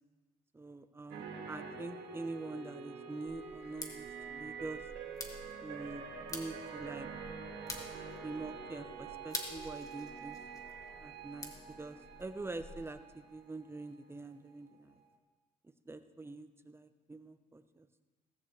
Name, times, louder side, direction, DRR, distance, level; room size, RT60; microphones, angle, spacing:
voice 1, 0.5-4.8 5.6-6.0 6.3-7.1 8.2-10.4 11.0-15.0 15.9-17.9, right 3 dB, 15° right, 9 dB, 0.8 m, -45 dB
sound 1, 1.1-14.4 14.7-14.9, right 5 dB, 85° right, 1.9 m, -47 dB
sound 2, 3.2-13.0, left 2 dB, 20° left, 1.8 m, -49 dB
17.5 x 14.5 x 3.3 m, 1.3 s
cardioid pair, 110°, 17 cm